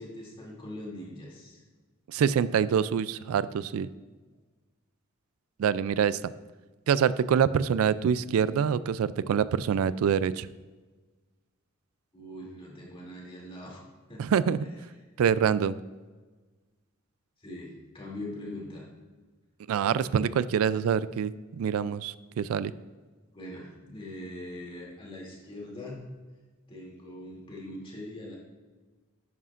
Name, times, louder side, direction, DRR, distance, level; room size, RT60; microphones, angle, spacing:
voice 1, 0.0-1.6 12.1-13.8 14.1-14.2 17.4-18.9 23.3-26.0 26.7-28.4, left 1 dB, 25° left, -3 dB, 2.6 m, -42 dB
voice 2, 2.1-3.9 5.6-6.2 6.9-10.5 14.2-14.6 15.2-15.8 19.7-22.7, right 7 dB, 90° right, 16 dB, 0.3 m, -25 dB
11.0 x 9.4 x 2.5 m, 1.3 s
head